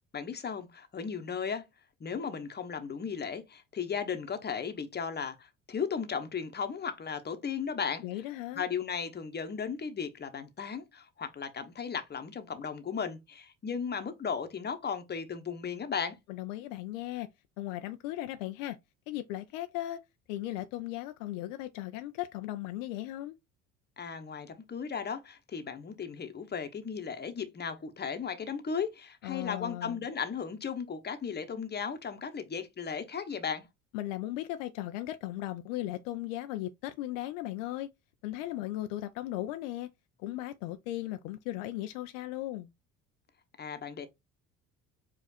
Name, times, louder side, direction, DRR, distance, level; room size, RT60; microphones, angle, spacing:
voice 1, 0.1-1.6 2.0-8.0 8.6-16.2 24.0-33.7 43.6-44.1, left 6 dB, 25° left, 1.0 m, -36 dB
voice 2, 8.0-8.6 16.3-17.3 17.6-18.8 19.1-20.0 20.3-23.4 29.2-30.0 33.9-37.9 38.2-39.9 40.2-42.7, left 15 dB, 65° left, 0.5 m, -37 dB
5.0 x 2.4 x 4.1 m
figure-of-eight pair, 55°, 41 cm